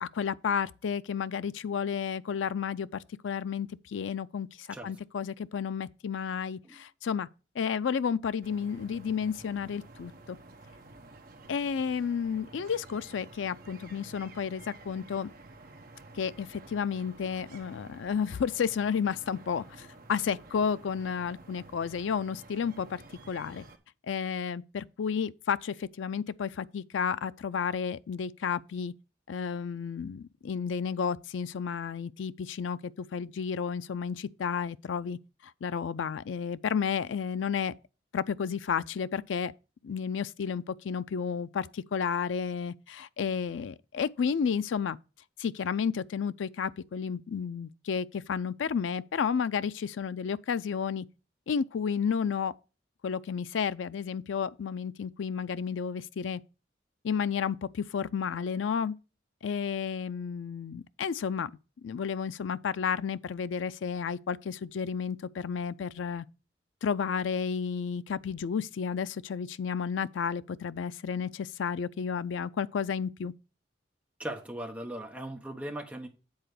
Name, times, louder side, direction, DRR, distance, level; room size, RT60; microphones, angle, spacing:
voice 1, 0.0-7.3 7.6-10.4 11.5-15.3 16.1-23.0 23.3-23.6 24.1-28.9 29.3-35.2 35.6-37.7 38.1-39.5 39.8-45.0 45.4-51.1 51.5-52.5 53.0-56.4 57.0-59.0 59.4-61.5 61.8-66.3 66.8-73.3, left 6 dB, 85° left, 0.4 m, -32 dB
sound 1, 8.4-23.8, right 2 dB, 50° right, 1.0 m, -51 dB
voice 2, 74.2-76.1, right 1 dB, 10° right, 1.1 m, -38 dB
8.0 x 4.1 x 6.6 m
head